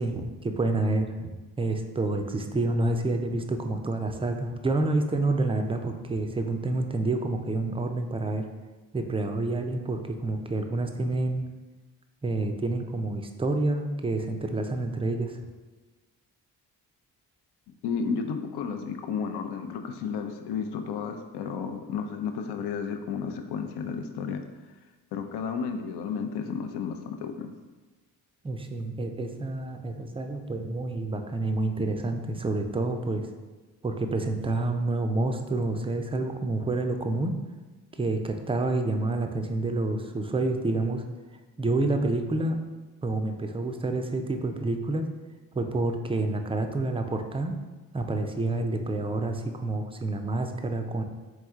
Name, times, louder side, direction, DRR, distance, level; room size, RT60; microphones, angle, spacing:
voice 1, 0.0-8.5 8.9-11.5 12.2-15.4 28.4-33.3 33.8-37.3 38.0-41.1 41.6-42.6 43.0-45.1 45.5-47.5 47.9-51.0, right 2 dB, 15° right, 5 dB, 0.4 m, -28 dB
voice 2, 17.8-24.4 25.1-27.5, left 6 dB, 65° left, 6 dB, 0.6 m, -32 dB
3.6 x 3.2 x 3.5 m, 1.2 s
supercardioid pair, 50°, 44 cm